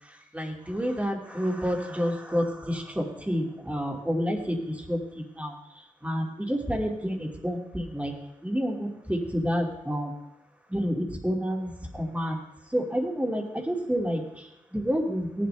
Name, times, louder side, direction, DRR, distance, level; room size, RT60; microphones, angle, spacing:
voice 1, 0.0-8.1 8.4-10.1 10.7-15.5, equal, 10° right, 0 dB, 2.5 m, -29 dB
18.0 x 11.0 x 3.4 m, 0.90 s
wide cardioid pair, 95°, 14 cm